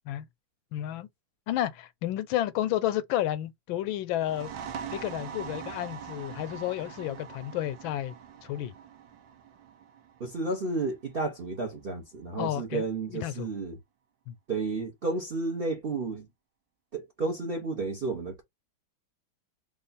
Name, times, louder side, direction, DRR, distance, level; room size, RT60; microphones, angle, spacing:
voice 1, 0.7-1.1 1.5-4.5 4.9-8.1 8.4-8.7 12.4-13.5 14.3-14.4, left 13 dB, 85° left, 1.3 m, -31 dB
sound 1, 4.2-11.6, right 7 dB, 75° right, 1.4 m, -43 dB
voice 2, 10.2-13.8 14.5-16.3 16.9-18.4, right 3 dB, 45° right, 0.7 m, -32 dB
3.4 x 2.3 x 3.9 m
omnidirectional pair, 2.1 m